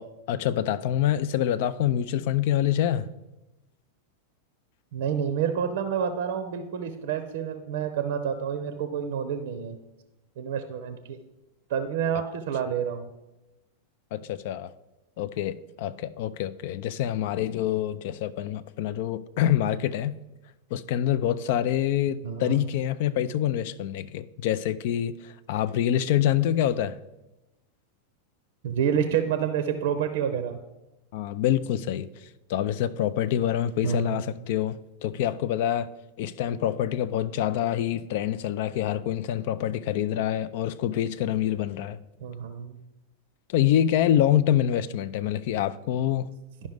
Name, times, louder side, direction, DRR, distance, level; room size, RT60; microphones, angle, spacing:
voice 1, 0.0-3.1 14.1-14.7 15.2-20.2 20.7-27.0 31.1-35.9 36.2-42.0 43.5-46.3, left 11 dB, 50° left, 0.3 m, -26 dB
voice 2, 4.9-9.8 10.4-11.2 11.7-13.1 22.2-22.6 28.6-30.6 33.8-34.2 42.2-42.8, right 8 dB, 55° right, 0.6 m, -28 dB
11.5 x 5.4 x 3.4 m
figure-of-eight pair, 90°, 0 cm